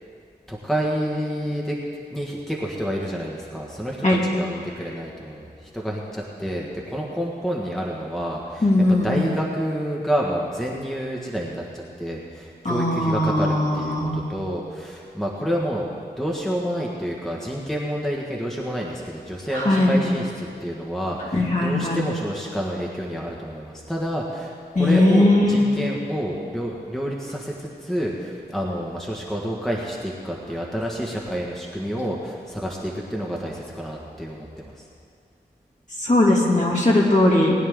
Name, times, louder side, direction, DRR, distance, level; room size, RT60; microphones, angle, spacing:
voice 1, 0.5-1.8 2.1-15.9 16.2-34.9, equal, ahead, -3 dB, 1.6 m, -29 dB
voice 2, 8.6-9.3 12.6-14.2 19.5-20.0 21.3-22.0 24.7-25.6 36.0-37.5, left 1 dB, 45° left, -4 dB, 2.8 m, -19 dB
20.0 x 9.5 x 3.8 m, 2.3 s
wide cardioid pair, 55°, 18 cm